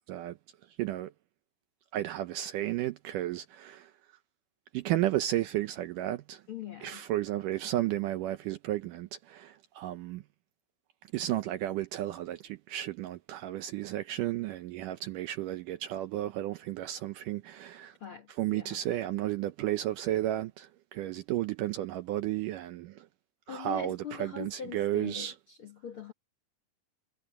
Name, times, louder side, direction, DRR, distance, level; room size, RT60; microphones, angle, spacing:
voice 1, 0.8-1.1 1.9-3.9 4.7-6.4 6.8-10.2 11.1-18.0 18.4-23.1 23.5-25.3, right 14 dB, 75° right, 2.0 m, -33 dB
voice 2, 6.5-7.0 18.0-18.8 23.5-26.1, left 8 dB, 55° left, 1.5 m, -42 dB
omnidirectional pair, 4.4 m